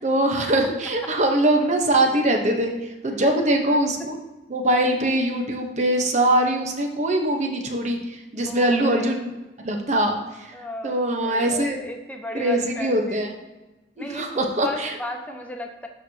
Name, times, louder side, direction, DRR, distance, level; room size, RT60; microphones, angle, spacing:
voice 1, 0.0-4.2 4.5-9.3 9.6-10.5 10.8-11.8 12.3-13.3 14.0-14.9, right 1 dB, 40° right, 3 dB, 1.0 m, -22 dB
voice 2, 8.4-9.1 10.5-13.2 14.0-15.9, left 1 dB, 10° left, 2 dB, 0.8 m, -35 dB
12.5 x 4.6 x 2.8 m, 1.1 s
head